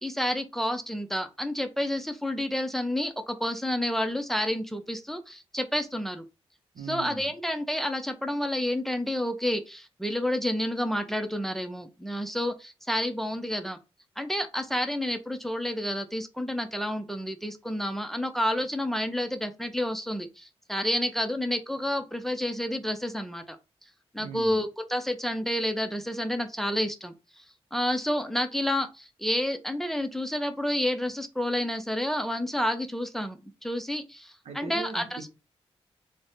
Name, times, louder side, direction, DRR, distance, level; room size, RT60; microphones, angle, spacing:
voice 1, 0.0-6.2 6.9-13.8 14.2-23.6 24.1-27.1 27.7-35.2, left 1 dB, 5° left, 0.6 m, -30 dB
voice 2, 6.7-7.3 24.2-24.6 34.4-35.4, right 4 dB, 80° right, 0.8 m, -39 dB
3.3 x 2.1 x 4.0 m
cardioid pair, 65°, 11 cm